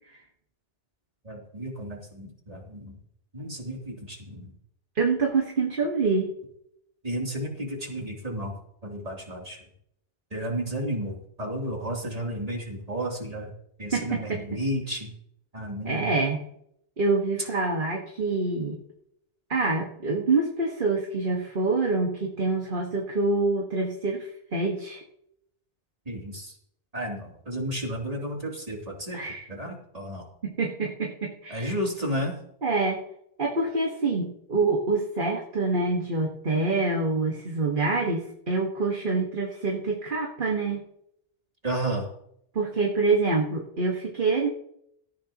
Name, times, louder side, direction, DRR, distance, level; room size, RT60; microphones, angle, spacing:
voice 1, 1.2-3.0 3.3-4.5 7.0-8.5 8.8-9.6 10.3-13.5 13.8-15.1 15.5-16.1 26.1-26.5 26.9-29.2 29.5-30.3 31.5-32.4 41.6-42.1, right 1 dB, 35° right, -1 dB, 3.2 m, -32 dB
voice 2, 5.0-6.3 13.9-14.6 15.9-16.5 17.0-18.8 19.5-25.0 29.1-29.5 30.4-31.7 32.6-33.0 33.4-40.8 42.6-44.5, right 3 dB, 50° right, 0 dB, 1.7 m, -26 dB
17.5 x 14.0 x 3.0 m, 0.73 s
omnidirectional pair, 1.1 m